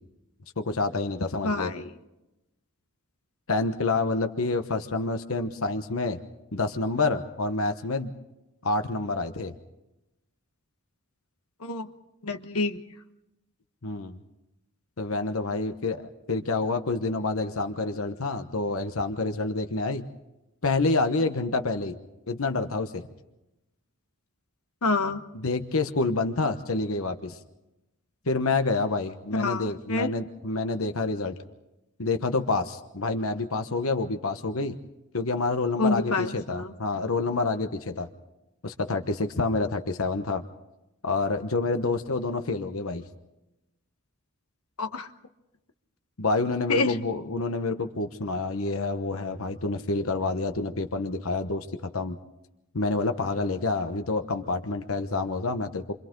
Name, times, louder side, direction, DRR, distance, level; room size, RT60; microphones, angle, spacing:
voice 1, 0.6-1.7 3.5-6.2 6.5-8.1 8.6-9.5 13.8-14.2 15.0-20.0 20.6-21.9 22.3-23.0 25.3-27.4 28.3-31.3 32.0-34.7 35.1-38.1 38.6-40.4 41.0-43.0 46.2-52.2 52.7-55.9, left 3 dB, 65° left, 7 dB, 1.1 m, -28 dB
voice 2, 1.4-1.9 11.6-11.9 12.2-12.8 24.8-25.2 29.3-30.1 35.8-36.7 44.8-45.1 46.7-47.0, left 3 dB, 85° left, 6 dB, 1.3 m, -27 dB
29.5 x 25.5 x 3.9 m, 0.96 s
head